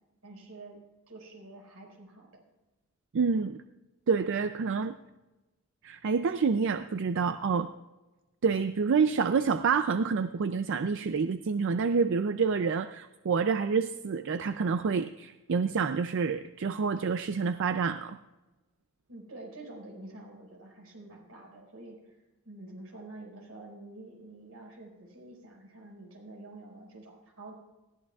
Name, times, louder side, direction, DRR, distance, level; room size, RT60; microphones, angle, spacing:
voice 1, 0.2-0.8 1.1-2.3 19.1-27.5, right 2 dB, 85° right, 0 dB, 5.0 m, -48 dB
voice 2, 3.1-3.6 4.1-4.9 5.8-7.7 8.4-18.2, right 5 dB, 60° right, 10 dB, 0.4 m, -28 dB
19.5 x 15.5 x 2.4 m, 1.1 s
head